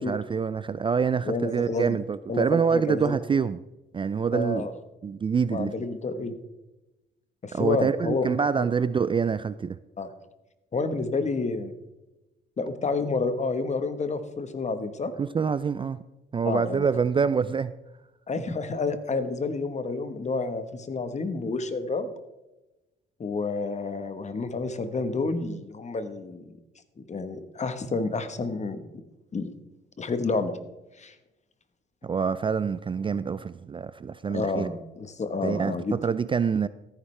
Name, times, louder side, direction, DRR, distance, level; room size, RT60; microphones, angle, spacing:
voice 1, 0.0-3.6 3.9-4.7 5.0-5.7 7.5-9.8 15.2-16.0 16.3-17.7 32.0-34.7 35.4-36.7, right 6 dB, 25° right, 0.3 m, -26 dB
voice 2, 1.2-2.0 2.3-3.2 4.3-4.7 5.5-6.4 7.4-8.3 8.6-8.7 10.0-10.1 10.7-11.7 12.6-15.1 16.4-16.9 18.3-22.1 23.2-26.5 27.0-28.8 29.3-29.5 30.0-30.6 31.0-31.1 34.3-36.0, left 3 dB, 35° left, 1.2 m, -29 dB
14.0 x 9.7 x 3.3 m
cardioid pair, 90°, 20 cm